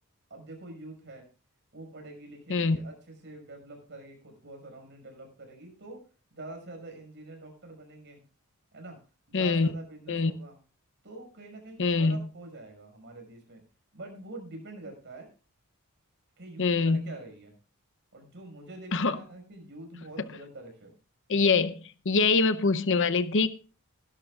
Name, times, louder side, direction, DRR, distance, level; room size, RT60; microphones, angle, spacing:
voice 1, 0.3-1.3 1.7-6.0 6.3-8.2 8.7-9.0 9.3-10.6 11.0-13.6 13.9-15.3 16.4-17.6 18.1-20.9, right 2 dB, 55° right, 5.9 m, -46 dB
voice 2, 9.3-9.7 10.1-10.3 11.8-12.2 16.6-17.0 18.9-19.2 21.3-21.7 22.0-23.5, left 4 dB, 60° left, 0.8 m, -24 dB
20.0 x 11.5 x 2.4 m
head